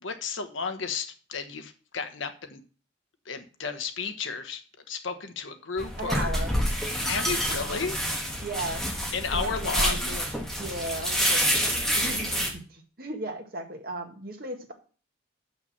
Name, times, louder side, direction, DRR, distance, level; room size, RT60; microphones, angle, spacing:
voice 1, 0.0-2.6 3.2-4.6 4.9-6.3 7.1-8.0 9.1-10.1, left 5 dB, 75° left, 7 dB, 1.2 m, -33 dB
Picking and sorting the clam at sea, 5.8-12.5, equal, ahead, 1.5 m, -28 dB
voice 2, 6.0-6.5 8.4-8.8 9.3-10.2 10.6-14.7, right 2 dB, 45° right, 3 dB, 1.8 m, -36 dB
6.7 x 5.9 x 7.2 m, 0.39 s
head